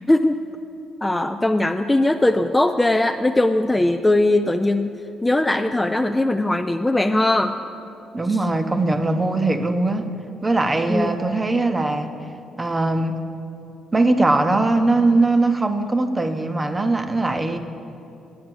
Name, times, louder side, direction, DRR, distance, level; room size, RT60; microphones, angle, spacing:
voice 1, 0.1-0.4 1.0-4.9 5.2-7.6 10.9-11.1, left 1 dB, 15° left, 7 dB, 0.4 m, -19 dB
voice 2, 8.1-10.1 10.4-12.1 12.6-13.2 13.9-17.6, right 2 dB, 20° right, 8 dB, 0.8 m, -20 dB
9.0 x 8.0 x 7.9 m, 2.7 s
cardioid pair, 90°, 0 cm